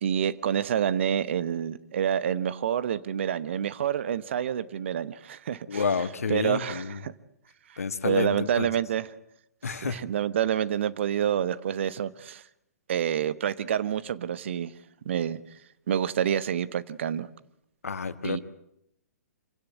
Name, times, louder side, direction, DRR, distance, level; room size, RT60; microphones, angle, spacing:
voice 1, 0.0-5.9 6.3-7.1 7.7-9.1 9.6-12.4 12.9-14.7 15.0-15.4 15.9-17.3 18.2-18.4, right 9 dB, 45° right, 16 dB, 1.0 m, -28 dB
voice 2, 5.7-7.0 7.8-8.7 9.6-10.0 17.8-18.4, left 5 dB, 60° left, 13 dB, 1.6 m, -29 dB
26.5 x 17.0 x 9.3 m, 0.78 s
figure-of-eight pair, 120°, 9 cm